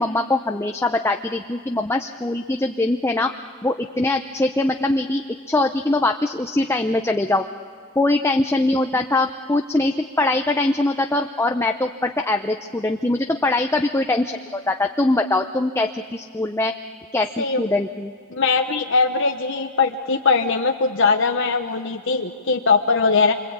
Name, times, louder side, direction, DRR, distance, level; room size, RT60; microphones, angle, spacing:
voice 1, 0.0-3.3 3.6-7.5 8.0-16.7 17.1-18.1, left 2 dB, 10° left, 5 dB, 0.6 m, -22 dB
voice 2, 18.3-23.3, left 4 dB, 60° left, 4 dB, 1.0 m, -20 dB
27.5 x 25.0 x 8.7 m, 2.1 s
head